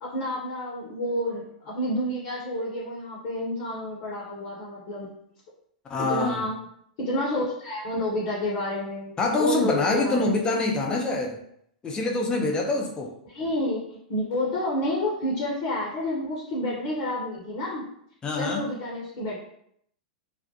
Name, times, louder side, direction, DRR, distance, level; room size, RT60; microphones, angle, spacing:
voice 1, 0.0-5.1 6.1-6.6 7.0-10.5 10.9-11.0 13.3-17.8 18.4-19.4, left 1 dB, 50° left, -4 dB, 0.8 m, -29 dB
voice 2, 5.9-6.4 9.2-11.4 11.8-13.1 18.2-18.7, left 2 dB, 20° left, 1 dB, 0.5 m, -25 dB
2.3 x 2.0 x 2.7 m, 0.71 s
hypercardioid pair, 105°, 4 cm